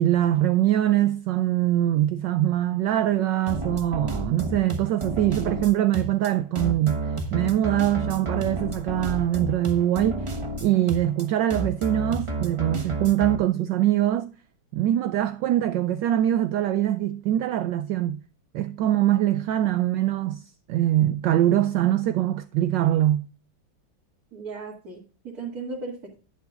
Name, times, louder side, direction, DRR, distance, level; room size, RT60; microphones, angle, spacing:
voice 1, 0.0-7.0 7.3-10.3 10.6-14.3 14.7-18.2 18.5-23.3, right 12 dB, 75° right, 1.2 m, -23 dB
sound 1, 3.5-13.4, right 2 dB, 20° right, 0.8 m, -31 dB
voice 2, 24.3-26.2, right 3 dB, 50° right, 2.7 m, -36 dB
11.5 x 11.0 x 2.4 m
omnidirectional pair, 2.2 m